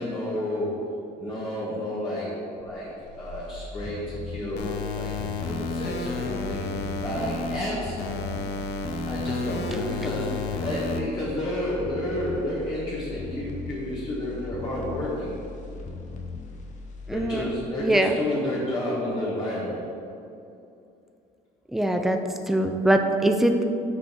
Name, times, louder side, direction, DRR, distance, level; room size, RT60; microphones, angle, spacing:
voice 1, 0.0-2.3 2.6-2.9 3.2-5.1 5.4-8.1 9.0-15.4 17.1-19.8, left 1 dB, 25° left, -7 dB, 1.5 m, -31 dB
sound 1, 2.6-18.7 19.0-19.1, left 3 dB, 45° left, 0.9 m, -39 dB
sound 2, 4.6-7.6 8.0-11.0, left 3 dB, 80° left, 0.7 m, -31 dB
voice 2, 17.1-17.5 17.8-18.1 21.7-22.2 22.5-23.6, right 1 dB, ahead, 5 dB, 0.5 m, -22 dB
6.3 x 5.2 x 4.5 m, 2.7 s
cardioid pair, 110°, 17 cm